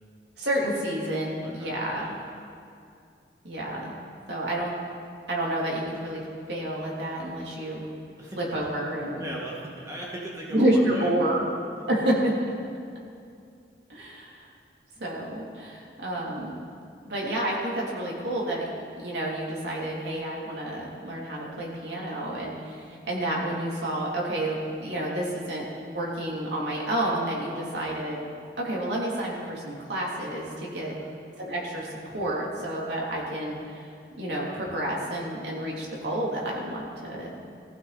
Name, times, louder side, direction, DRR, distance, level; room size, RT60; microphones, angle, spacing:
voice 1, 0.4-2.1 3.4-3.9 4.3-4.7 5.3-7.9 8.4-9.2 10.5-11.4 11.9-12.3 13.9-14.5 15.0-16.5 17.0-18.7 19.0-28.3 28.6-30.9 31.4-33.9 34.1-37.4, right 1 dB, 80° right, -4 dB, 3.3 m, -29 dB
voice 2, 1.4-2.2 8.2-8.4 9.2-11.1 11.8-11.9 15.0-15.2 30.7-31.2, right 1 dB, 20° right, -4 dB, 2.1 m, -39 dB
19.5 x 15.0 x 4.3 m, 2.5 s
head